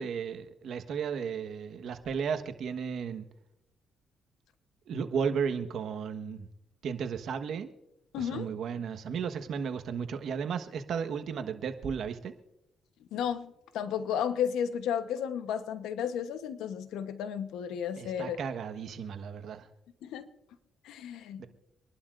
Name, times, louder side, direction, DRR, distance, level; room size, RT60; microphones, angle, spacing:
voice 1, 0.0-3.3 4.9-6.5 6.8-7.7 8.1-12.3 18.0-19.7 21.4-21.5, right 6 dB, 70° right, 8 dB, 1.3 m, -34 dB
voice 2, 8.1-8.5 13.1-18.4 20.0-20.3 20.8-21.5, left 8 dB, 85° left, 10 dB, 1.0 m, -33 dB
26.0 x 11.5 x 2.6 m, 0.87 s
cardioid pair, 90°, 0 cm